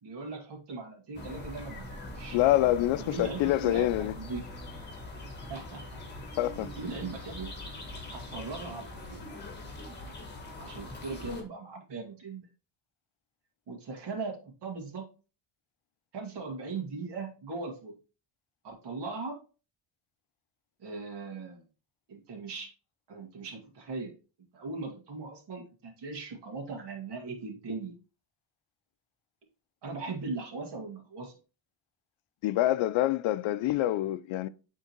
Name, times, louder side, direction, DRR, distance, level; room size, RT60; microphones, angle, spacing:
voice 1, 0.0-2.4 3.0-4.4 5.5-6.0 6.6-7.5 8.1-9.2 10.6-12.5 13.7-15.0 16.1-18.0 18.6-19.4 20.8-21.6 22.1-22.7 23.1-24.1 24.5-27.9 29.8-31.3, right 3 dB, 55° right, 2.0 m, -39 dB
sound 1, 1.1-11.4, left 2 dB, 20° left, 1.4 m, -42 dB
voice 2, 2.3-4.1 6.4-6.7 32.4-34.5, left 14 dB, 75° left, 0.5 m, -26 dB
8.8 x 3.7 x 2.9 m
cardioid pair, 155°, 47 cm